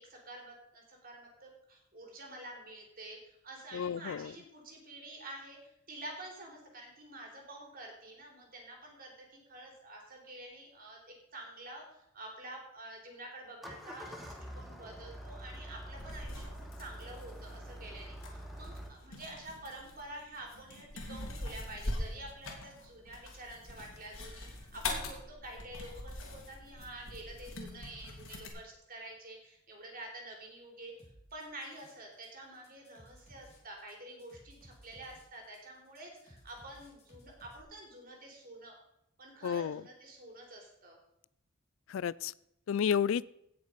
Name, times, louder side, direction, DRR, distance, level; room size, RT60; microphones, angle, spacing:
voice 1, 0.0-5.6 5.9-16.5 16.8-30.9 31.3-38.8 39.2-41.0, right 1 dB, 45° right, 1 dB, 3.7 m, -48 dB
voice 2, 3.7-4.3 39.4-39.8 41.9-42.3 42.7-43.2, left 8 dB, 70° left, 21 dB, 0.3 m, -31 dB
Engine starting, 13.5-18.9, equal, ahead, 1.5 m, -46 dB
sound 1, 15.9-28.5, left 2 dB, 85° left, 2.7 m, -43 dB
sound 2, 31.0-32.3 32.5-37.6, equal, 30° left, 3.7 m, -58 dB
17.5 x 6.6 x 5.1 m, 0.81 s
head